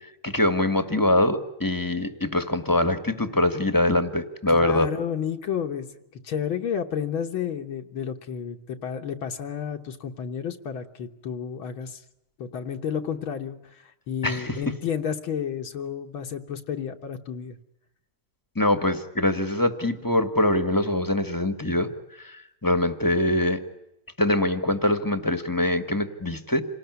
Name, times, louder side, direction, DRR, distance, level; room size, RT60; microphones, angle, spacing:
voice 1, 0.2-4.9 14.2-14.6 18.5-21.9 22.2-23.6 24.2-26.6, left 1 dB, 10° left, 10 dB, 1.4 m, -23 dB
voice 2, 4.5-5.9 6.2-12.0 12.4-17.6, left 8 dB, 70° left, 4 dB, 2.1 m, -31 dB
28.0 x 19.0 x 9.5 m, 0.91 s
omnidirectional pair, 2.4 m